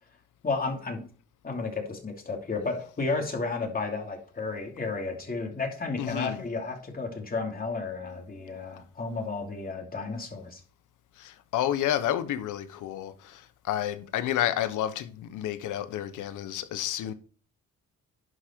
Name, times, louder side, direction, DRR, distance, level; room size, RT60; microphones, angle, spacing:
voice 1, 0.4-1.1 1.4-10.6, left 3 dB, 30° left, 2.8 m, -32 dB
voice 2, 6.0-6.4 11.2-17.1, left 11 dB, 80° left, 1.0 m, -30 dB
11.5 x 5.0 x 4.5 m
cardioid pair, 90°, 30 cm